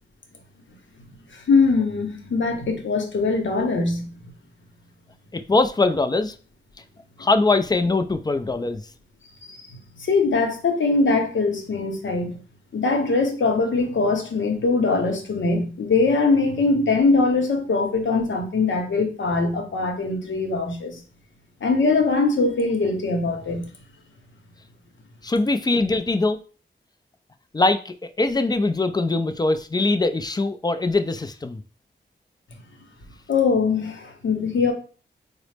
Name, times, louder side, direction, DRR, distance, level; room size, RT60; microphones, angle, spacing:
voice 1, 1.3-4.3 9.4-12.4 12.7-21.0 21.6-23.7 33.3-34.7, left 3 dB, 80° left, 0.8 m, -22 dB
voice 2, 5.3-6.3 7.2-8.8 25.2-26.4 27.5-31.6, left 3 dB, 20° left, 0.3 m, -22 dB
3.9 x 2.0 x 3.2 m
cardioid pair, 60°, 19 cm